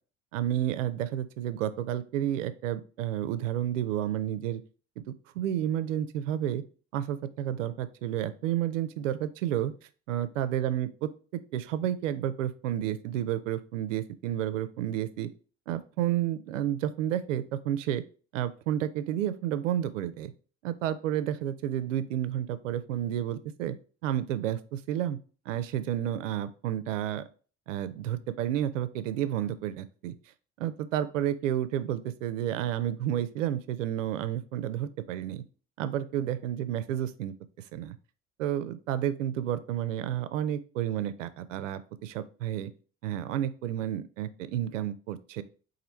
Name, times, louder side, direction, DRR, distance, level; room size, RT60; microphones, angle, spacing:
voice 1, 0.3-4.6 5.3-6.6 6.9-9.7 10.1-15.3 15.7-18.0 18.3-20.3 20.6-23.8 24.0-25.2 25.5-27.2 27.7-30.1 30.6-35.4 35.8-37.3 37.7-38.0 38.4-42.7 43.0-45.4, right 11 dB, 85° right, 14 dB, 0.5 m, -31 dB
4.3 x 2.6 x 4.0 m, 0.38 s
hypercardioid pair, 65°, 37 cm